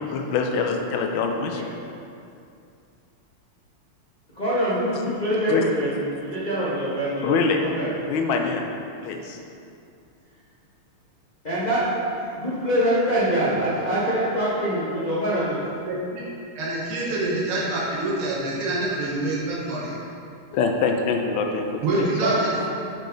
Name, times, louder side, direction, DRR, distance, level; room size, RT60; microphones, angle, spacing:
voice 1, 0.0-1.6 5.5-5.7 7.2-7.6 8.1-8.7 9.0-9.4 20.5-22.1, left 5 dB, 75° left, 3 dB, 1.2 m, -24 dB
voice 2, 4.3-7.9 11.4-11.8 12.1-15.6 22.2-22.3, right 1 dB, 30° left, -10 dB, 0.8 m, -24 dB
voice 3, 15.9-16.2 16.6-20.0 21.8-22.8, right 2 dB, 85° right, -5 dB, 1.9 m, -26 dB
6.5 x 5.3 x 3.8 m, 2.5 s
omnidirectional pair, 2.4 m